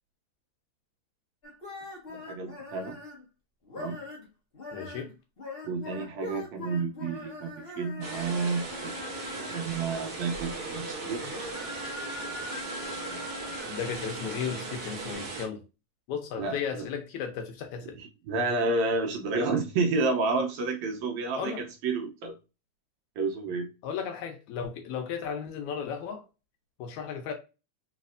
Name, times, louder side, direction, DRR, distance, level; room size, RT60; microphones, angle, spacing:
sound 1, 1.4-3.2 3.6-4.3 4.5-9.7 10.1-15.1, left 2 dB, 40° left, 0.8 m, -42 dB
voice 1, 2.1-3.0 3.8-4.0 5.6-9.0 9.3-11.2 16.4-16.9 18.0-21.5 21.8-22.4 23.2-23.7, right 3 dB, 75° right, 1.9 m, -30 dB
voice 2, 4.7-5.1 13.6-15.6 16.1-18.0 21.4-21.6 23.8-26.2 26.8-27.3, left 7 dB, 75° left, 2.0 m, -35 dB
sound 2, 8.0-15.5, right 4 dB, 50° right, 1.1 m, -38 dB
4.9 x 3.2 x 2.5 m
omnidirectional pair, 3.5 m